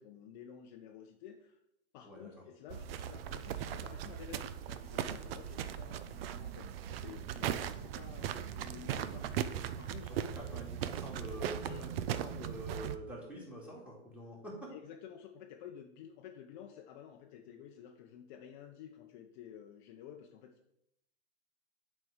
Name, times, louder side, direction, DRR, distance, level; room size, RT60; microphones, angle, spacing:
voice 1, 0.0-1.6 1.9-9.5 9.8-10.6 11.6-11.8 12.1-12.3 14.7-20.5, left 9 dB, 40° left, 3 dB, 0.7 m, -52 dB
sound 1, 2.7-13.0, right 10 dB, 50° right, 0.5 m, -39 dB
voice 2, 10.1-14.7, right 1 dB, 5° right, -4 dB, 2.2 m, -46 dB
7.7 x 4.3 x 4.9 m, 0.81 s
hypercardioid pair, 135°, 37 cm